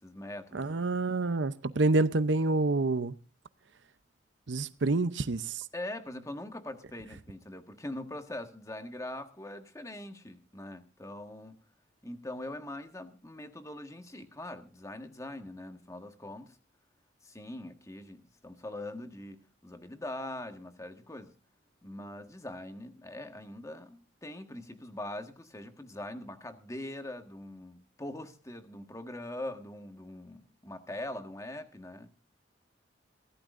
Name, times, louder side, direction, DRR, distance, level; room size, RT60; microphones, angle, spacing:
voice 1, 0.0-0.7 5.7-11.6 12.0-16.6 17.2-21.3 21.8-32.1, left 1 dB, 20° left, 1.5 m, -42 dB
voice 2, 0.5-3.1 4.5-5.6, right 2 dB, 85° right, 0.7 m, -27 dB
22.5 x 15.5 x 2.6 m
head